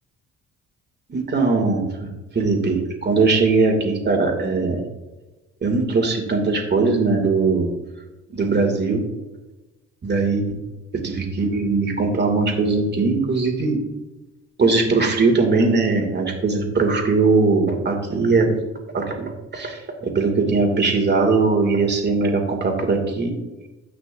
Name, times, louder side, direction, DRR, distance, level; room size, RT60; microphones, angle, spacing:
voice 1, 1.1-1.8 2.3-4.8 5.6-7.7 8.3-9.0 10.0-10.5 11.0-13.8 14.6-18.5 18.9-19.2 19.5-23.3, right 3 dB, 35° right, 3 dB, 2.3 m, -20 dB
16.0 x 6.0 x 2.5 m, 1.1 s
cardioid pair, 90°, 30 cm